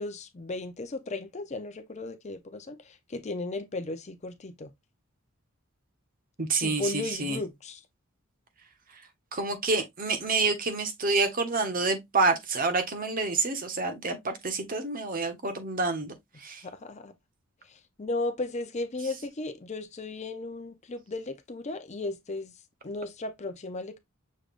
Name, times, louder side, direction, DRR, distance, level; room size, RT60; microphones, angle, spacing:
voice 1, 0.0-4.7 6.6-7.8 16.6-17.1 17.7-22.5 22.8-24.0, left 2 dB, 35° left, 0.6 m, -35 dB
voice 2, 6.4-7.4 8.9-9.0 9.3-16.6, right 3 dB, 40° right, 1.0 m, -28 dB
6.4 x 3.4 x 2.5 m
head